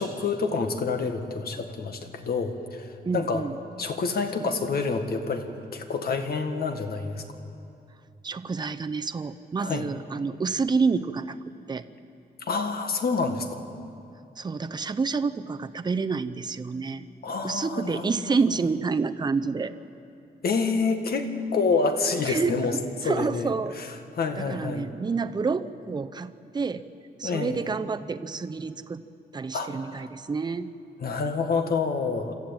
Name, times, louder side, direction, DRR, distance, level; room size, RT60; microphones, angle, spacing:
voice 1, 0.0-2.9 3.1-3.5 3.8-5.5 5.7-7.2 9.6-9.9 12.4-13.6 17.2-18.1 20.4-22.7 23.0-24.9 27.2-27.7 29.5-30.0 31.0-32.3, left 4 dB, 65° left, 6 dB, 1.7 m, -28 dB
voice 2, 3.0-3.6 8.2-11.4 11.7-11.9 14.4-17.0 17.4-19.7 22.3-23.8 24.4-26.8 27.2-29.0 29.3-30.7, right 4 dB, 25° right, 10 dB, 0.6 m, -28 dB
26.5 x 13.5 x 8.9 m, 2.6 s
wide cardioid pair, 160°, 17 cm